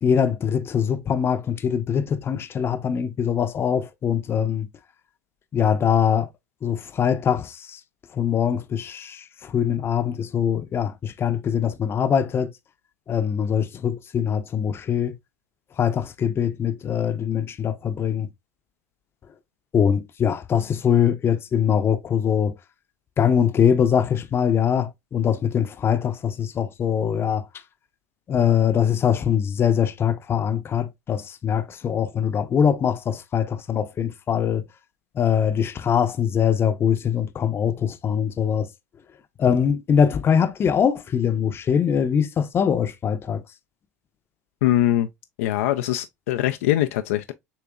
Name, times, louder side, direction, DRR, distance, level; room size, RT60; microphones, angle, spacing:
voice 1, 0.0-4.7 5.5-6.3 6.6-7.8 8.1-12.5 13.1-15.2 15.8-18.3 19.7-22.5 23.2-27.4 28.3-34.6 35.1-38.7 39.4-43.4, left 8 dB, 30° left, 0.7 m, -22 dB
voice 2, 44.6-45.1 45.4-47.3, left 13 dB, 65° left, 0.4 m, -22 dB
6.9 x 2.9 x 2.3 m
figure-of-eight pair, 75°, 8 cm